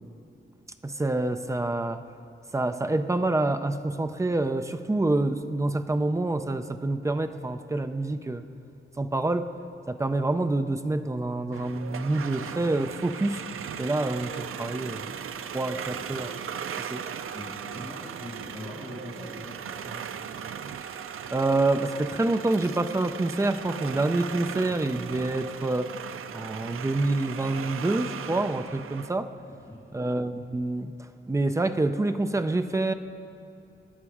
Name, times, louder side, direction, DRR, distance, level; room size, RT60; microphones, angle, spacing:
voice 1, 0.8-2.0 2.5-8.4 9.0-9.5 9.9-13.4 13.8-16.3 16.9-17.0 21.3-25.9 26.3-29.3 29.9-32.9, right 2 dB, 15° right, 9 dB, 0.5 m, -27 dB
sound 1, 11.5-29.1, right 8 dB, 85° right, 0.5 m, -38 dB
voice 2, 15.7-16.3 17.3-20.0 29.5-29.9, left 1 dB, 20° left, -8 dB, 2.2 m, -43 dB
23.5 x 10.0 x 4.9 m, 2.7 s
wide cardioid pair, 180°, 21 cm